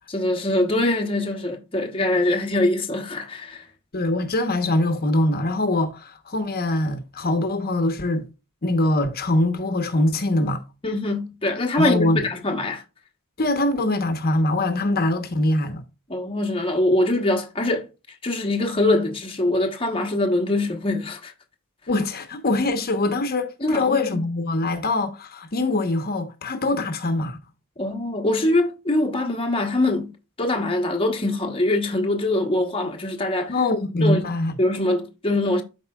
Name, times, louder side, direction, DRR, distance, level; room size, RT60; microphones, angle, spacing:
voice 1, 0.1-3.6 10.8-12.8 16.1-17.9 18.2-21.3 23.6-24.2 27.8-30.1 30.4-33.5 34.0-34.3 34.6-35.6, left 1 dB, 25° left, 1.1 m, -23 dB
voice 2, 3.9-8.2 8.6-10.6 11.8-12.3 13.4-15.8 21.9-27.4 33.5-34.6, left 2 dB, 45° left, 1.1 m, -23 dB
12.5 x 4.7 x 2.3 m
head